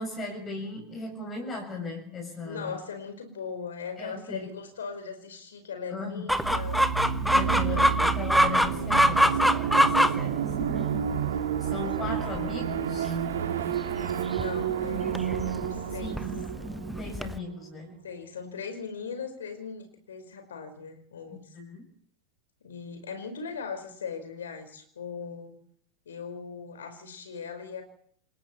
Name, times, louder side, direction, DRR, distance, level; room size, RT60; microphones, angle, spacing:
voice 1, 0.0-2.8 4.0-4.5 5.9-6.2 7.3-10.7 11.6-13.1 16.0-16.4 17.0-18.0 21.3-21.8, left 3 dB, 20° left, 2 dB, 6.8 m, -37 dB
voice 2, 2.4-6.8 7.3-7.6 14.3-16.2 18.0-21.5 22.6-25.6 26.0-27.8, left 6 dB, 65° left, 7 dB, 4.9 m, -39 dB
Chicken rooster, 6.3-17.4, equal, ahead, 1.1 m, -26 dB
sound 1, 6.4-17.9, right 8 dB, 60° right, 2.4 m, -30 dB
28.5 x 21.0 x 4.5 m, 0.63 s
figure-of-eight pair, 90°, 0 cm